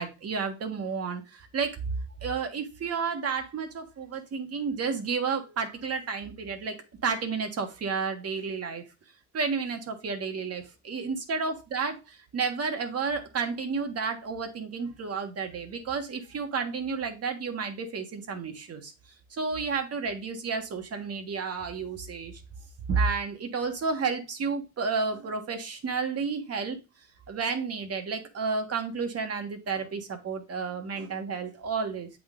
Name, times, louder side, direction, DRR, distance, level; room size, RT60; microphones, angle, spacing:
voice 1, 0.0-1.8 2.2-8.8 9.3-18.9 19.3-22.4 22.9-26.8 27.3-32.1, right 5 dB, 55° right, 6 dB, 1.4 m, -31 dB
7.8 x 3.8 x 3.7 m, 0.28 s
cardioid pair, 90°, 30 cm